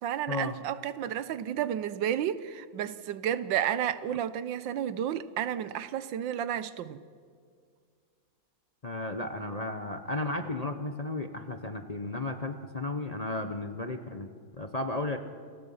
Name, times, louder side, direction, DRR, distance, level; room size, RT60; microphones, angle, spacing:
voice 1, 0.0-7.0, right 10 dB, 80° right, 1.5 m, -31 dB
voice 2, 8.8-14.3 14.6-15.2, left 2 dB, 35° left, 0.6 m, -34 dB
29.0 x 20.5 x 5.6 m
omnidirectional pair, 2.0 m